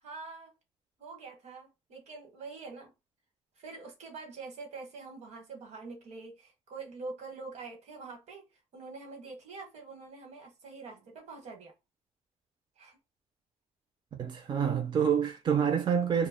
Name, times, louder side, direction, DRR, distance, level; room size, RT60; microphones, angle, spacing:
voice 1, 0.0-0.5 1.0-2.9 3.6-8.5 8.7-11.7 12.8-13.0, right 4 dB, 85° right, 1.1 m, -45 dB
voice 2, 14.1-16.3, right 7 dB, 45° right, 0.4 m, -27 dB
2.1 x 2.0 x 3.4 m
cardioid pair, 105°, 11 cm